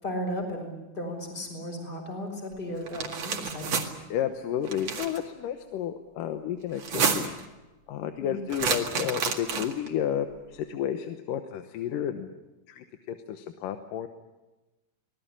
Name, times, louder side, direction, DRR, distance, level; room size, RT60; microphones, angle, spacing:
voice 1, 0.0-3.9 8.2-8.4, equal, 15° left, 3 dB, 4.9 m, -35 dB
sound 1, 2.9-3.9 4.7-5.2 6.7-7.4 8.5-9.9, right 6 dB, 55° right, 3.0 m, -29 dB
voice 2, 4.1-7.3 7.9-12.3 12.7-14.1, left 10 dB, 90° left, 7 dB, 2.7 m, -32 dB
25.0 x 19.0 x 8.8 m, 1.1 s
omnidirectional pair, 3.8 m